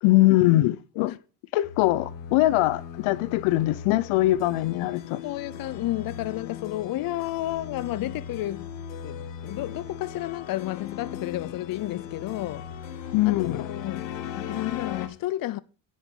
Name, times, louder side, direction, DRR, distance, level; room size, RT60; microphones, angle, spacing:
voice 1, 0.0-1.1 1.5-5.2 13.1-13.7, left 17 dB, 80° left, 0.9 m, -22 dB
sound 1, 1.6-15.1, left 8 dB, 65° left, 1.6 m, -38 dB
voice 2, 5.2-8.7 9.0-12.7 13.4-14.1 14.3-15.6, left 15 dB, 45° left, 0.6 m, -31 dB
10.0 x 8.1 x 3.8 m
cardioid pair, 125°, 48 cm